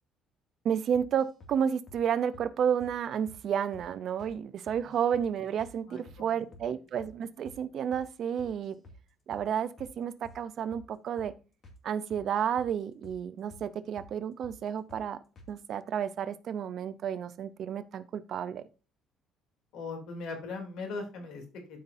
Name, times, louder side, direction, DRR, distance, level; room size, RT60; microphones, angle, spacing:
voice 1, 0.6-8.8 9.3-9.7 10.0-11.3 11.8-15.2 15.5-18.6, right 8 dB, 50° right, 14 dB, 0.6 m, -31 dB
sound 1, 0.9-1.6 1.9-2.0 2.3-2.5 2.8-3.0 3.3-3.4 3.7-3.9 4.2-4.4 4.7-5.3 5.6-5.8 6.1-6.2 6.5-6.7 7.0-7.2 7.5-7.6 7.9-8.1 8.4-9.0 9.3-9.5 9.8-9.9 10.2-10.4 10.7-10.9 11.2-11.3 11.6-11.8 12.1-12.7 13.0-13.2 13.5-13.7 14.0-14.1 14.4-14.6 14.9-15.1 15.4-15.5, left 1 dB, 40° left, 2.2 m, -51 dB
voice 2, 5.9-6.4 19.7-21.8, left 3 dB, 70° left, 3 dB, 2.9 m, -39 dB
12.5 x 5.5 x 2.7 m, 0.34 s
cardioid pair, 140°, 0 cm